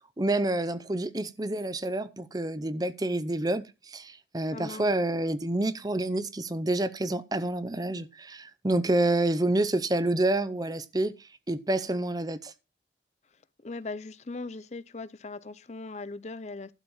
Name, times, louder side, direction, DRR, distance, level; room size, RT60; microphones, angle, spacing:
voice 1, 0.2-11.1 11.5-12.5, right 2 dB, 20° right, 0.6 m, -28 dB
voice 2, 4.5-4.9 13.6-16.7, left 3 dB, 35° left, 0.6 m, -39 dB
12.0 x 4.4 x 7.1 m
head